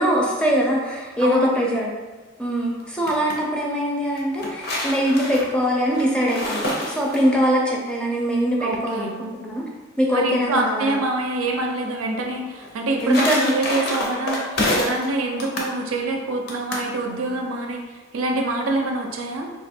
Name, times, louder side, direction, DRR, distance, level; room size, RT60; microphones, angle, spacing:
voice 1, 0.0-1.9 2.4-9.6 10.0-11.0 13.0-13.6, equal, 5° left, -3 dB, 0.5 m, -22 dB
voice 2, 1.2-1.5 8.6-9.1 10.1-17.8 18.1-19.5, right 2 dB, 90° right, 2 dB, 0.5 m, -25 dB
sound 1, 2.8-3.4 4.2-7.5 12.6-15.1 15.4-15.7 16.5-16.9, left 1 dB, 50° left, 0.7 m, -27 dB
3.0 x 2.3 x 4.2 m, 1.3 s
head